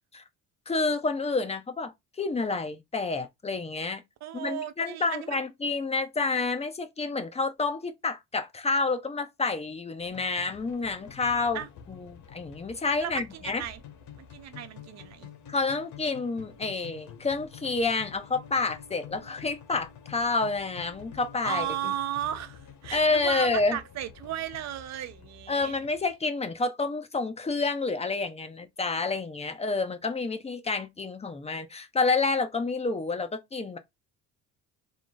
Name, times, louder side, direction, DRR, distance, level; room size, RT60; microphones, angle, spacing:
voice 1, 0.7-4.0 4.3-11.6 11.9-13.6 15.5-21.9 22.9-23.8 25.5-33.8, left 3 dB, 20° left, 0.7 m, -29 dB
voice 2, 4.2-5.4 11.5-11.7 13.0-13.8 14.2-15.3 21.4-25.8, right 11 dB, 60° right, 0.5 m, -35 dB
sound 1, 10.0-26.2, left 8 dB, 65° left, 1.1 m, -48 dB
3.7 x 2.5 x 3.7 m
cardioid pair, 115°, 31 cm